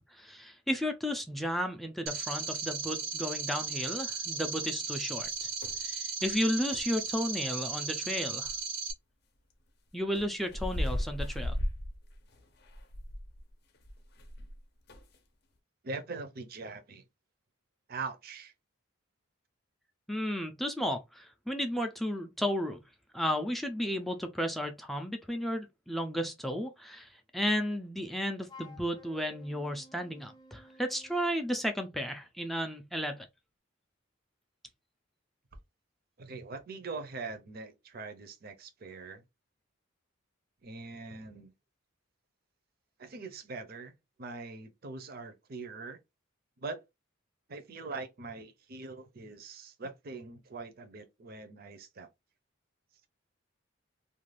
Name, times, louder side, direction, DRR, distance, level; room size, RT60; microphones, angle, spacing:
voice 1, 0.2-5.5 5.8-8.5 9.9-11.5 20.1-22.8 23.1-33.3, equal, ahead, 0.3 m, -33 dB
sound 1, 2.1-8.9, right 5 dB, 80° right, 0.8 m, -36 dB
sound 2, 5.2-5.8 6.2-6.4 6.7-7.0 8.4-8.6 10.2-14.6 14.9-15.2, left 1 dB, 55° left, 0.6 m, -36 dB
voice 2, 15.8-17.0 17.9-18.5 36.2-39.2 40.6-41.5 43.0-46.0 46.6-46.8 47.5-52.1, right 3 dB, 50° right, 0.5 m, -42 dB
Wind instrument woodwind instrument, 28.5-31.3, left 3 dB, 20° left, 0.8 m, -54 dB
2.5 x 2.3 x 3.1 m
head